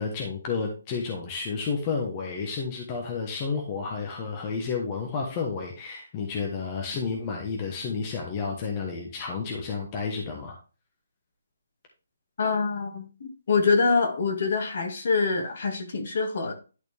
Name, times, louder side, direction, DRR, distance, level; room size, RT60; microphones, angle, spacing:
voice 1, 0.0-10.6, left 5 dB, 20° left, 1 dB, 1.2 m, -31 dB
voice 2, 12.4-13.0 13.5-16.5, left 4 dB, 50° left, 5 dB, 1.9 m, -25 dB
11.0 x 4.3 x 3.4 m, 0.34 s
hypercardioid pair, 170°, 0 cm